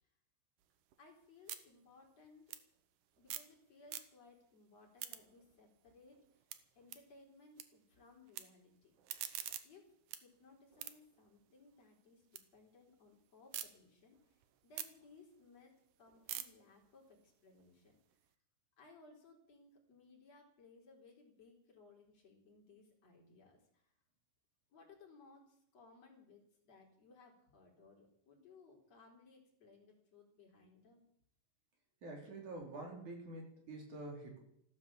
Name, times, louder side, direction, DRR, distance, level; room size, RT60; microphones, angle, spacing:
sound 1, 0.6-3.6 3.8-4.4 4.8-7.6 7.9-8.4 8.8-12.4 12.8-13.7 14.1-18.3, right 12 dB, 70° right, 2.1 m, -49 dB
voice 1, 1.0-2.5 3.2-6.5 6.7-8.9 9.6-9.9 10.1-18.0 18.8-23.9 24.7-31.0, left 3 dB, 40° left, -1 dB, 4.8 m, -63 dB
voice 2, 32.0-34.4, right 2 dB, 50° right, 1 dB, 4.5 m, -47 dB
14.5 x 13.0 x 7.4 m, 0.74 s
omnidirectional pair, 4.7 m